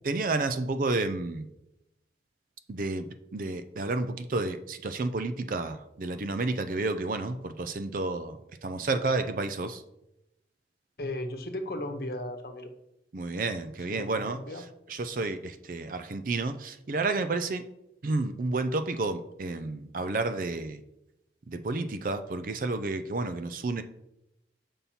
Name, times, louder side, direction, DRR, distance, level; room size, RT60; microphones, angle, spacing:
voice 1, 0.0-1.5 2.7-9.8 13.1-14.4 14.9-17.6 18.0-20.8 21.5-23.8, right 3 dB, 50° right, 10 dB, 0.4 m, -31 dB
voice 2, 11.0-12.7 13.9-14.6, left 1 dB, 55° left, 6 dB, 1.0 m, -36 dB
7.3 x 5.5 x 4.2 m, 0.85 s
head